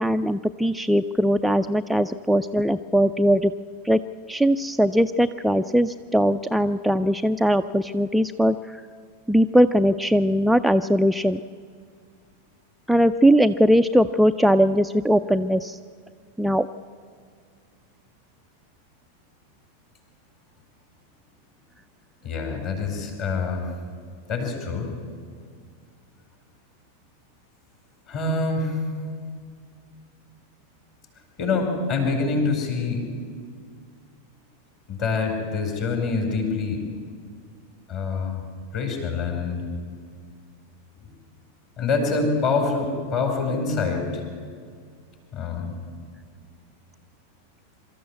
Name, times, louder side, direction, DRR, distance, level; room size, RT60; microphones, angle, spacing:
voice 1, 0.0-3.5 3.8-4.0 4.3-8.8 9.3-11.4 12.9-15.8 16.4-16.7, equal, ahead, 7 dB, 0.4 m, -20 dB
voice 2, 22.2-23.7 24.3-24.9 28.1-28.8 31.4-33.0 34.9-36.9 37.9-38.4 38.7-39.7 41.0-41.1 41.8-44.2 45.3-45.7, left 4 dB, 45° left, 3 dB, 4.8 m, -25 dB
24.0 x 13.5 x 8.2 m, 2.1 s
figure-of-eight pair, 90°, 0 cm